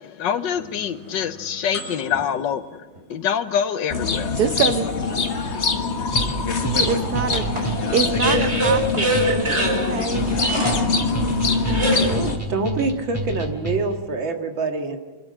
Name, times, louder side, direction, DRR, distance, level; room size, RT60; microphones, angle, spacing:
voice 1, 0.0-4.4, left 8 dB, 70° left, 11 dB, 1.5 m, -25 dB
sound 1, 0.6-2.3 3.0-3.1 6.9-12.2, right 1 dB, 30° right, 4.8 m, -25 dB
sound 2, 3.9-12.4, left 4 dB, 40° left, 1.5 m, -24 dB
voice 2, 4.4-4.9 6.8-9.1 9.7-10.3 12.1-12.3, right 7 dB, 60° right, 10 dB, 1.2 m, -25 dB
sound 3, 6.1-14.1, right 2 dB, 10° left, 2.6 m, -30 dB
voice 3, 12.5-15.0, right 3 dB, 80° right, 4 dB, 2.6 m, -25 dB
27.0 x 12.5 x 7.7 m, 1.3 s
omnidirectional pair, 2.1 m